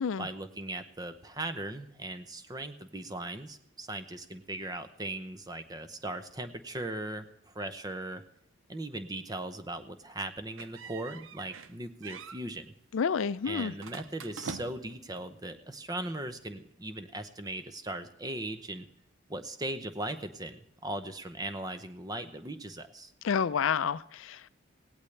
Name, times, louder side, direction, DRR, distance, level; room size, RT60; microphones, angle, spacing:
voice 1, 0.2-8.2 8.7-12.7 13.4-18.9 19.3-23.1, right 2 dB, 20° right, 10 dB, 0.6 m, -38 dB
sound 1, 10.6-11.7 12.0-12.4 13.8-15.0, right 5 dB, 75° right, 0.6 m, -44 dB
voice 2, 12.9-13.7 23.2-24.5, left 6 dB, 75° left, 17 dB, 0.4 m, -29 dB
17.0 x 17.0 x 3.3 m, 0.81 s
head